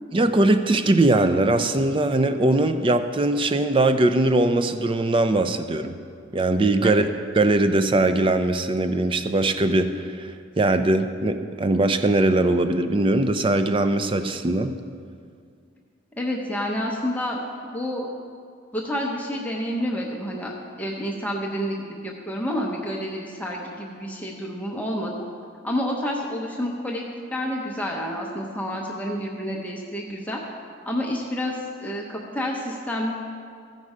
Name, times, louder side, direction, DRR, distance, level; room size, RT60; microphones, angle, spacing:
voice 1, 0.1-6.0 6.3-7.1 7.3-14.7, right 2 dB, 25° right, 9 dB, 0.4 m, -21 dB
voice 2, 16.2-18.1 18.7-20.5 20.8-25.1 25.6-27.0 27.3-30.4 30.9-33.1, equal, 10° left, -2 dB, 0.8 m, -29 dB
15.0 x 5.4 x 4.9 m, 2.2 s
head